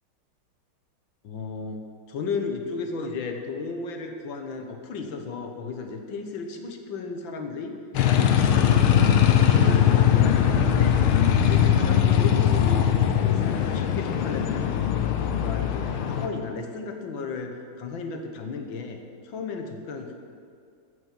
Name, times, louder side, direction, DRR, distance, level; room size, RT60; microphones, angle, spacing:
voice 1, 1.2-7.7 8.0-11.1 11.4-14.7 15.2-19.0 19.2-20.1, left 4 dB, 70° left, 4 dB, 1.8 m, -34 dB
sound 1, 7.9-16.3, left 9 dB, 90° left, 1.7 m, -20 dB
13.0 x 6.5 x 7.4 m, 2.3 s
omnidirectional pair, 2.3 m